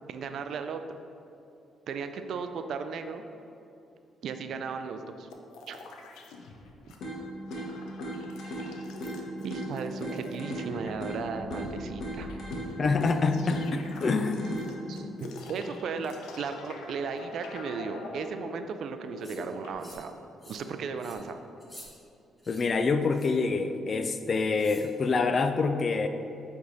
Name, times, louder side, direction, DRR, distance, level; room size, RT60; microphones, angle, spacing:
voice 1, 0.1-0.8 1.9-3.2 4.2-5.3 5.7-5.8 9.4-12.3 14.9-20.1 20.5-21.4, right 5 dB, 70° right, 8 dB, 0.4 m, -36 dB
sound 1, 5.3-7.0 7.2-19.7, left 3 dB, 90° left, 0.6 m, -45 dB
sound 2, 7.0-15.0, right 1 dB, 70° left, 1.3 m, -38 dB
voice 2, 12.8-15.1 22.5-26.1, left 4 dB, 40° left, 8 dB, 0.4 m, -27 dB
sound 3, 19.2-19.4 19.8-20.1 20.4-20.7 21.0-21.2 21.6-21.9 22.4-22.7 23.1-23.4 24.5-24.9, left 1 dB, 15° left, 1.3 m, -49 dB
7.8 x 3.5 x 4.1 m, 2.8 s
cardioid pair, 90°, 0 cm